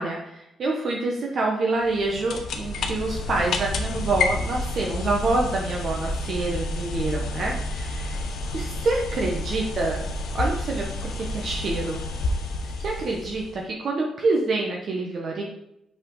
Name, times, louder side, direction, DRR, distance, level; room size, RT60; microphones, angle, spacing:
voice 1, 0.0-8.2 8.5-10.0 10.3-12.0 12.8-15.4, right 3 dB, 55° right, -1 dB, 1.2 m, -27 dB
sound 1, 1.8-13.6, left 2 dB, 70° left, 1.0 m, -30 dB
6.1 x 5.7 x 3.9 m, 0.81 s
cardioid pair, 90°, 0 cm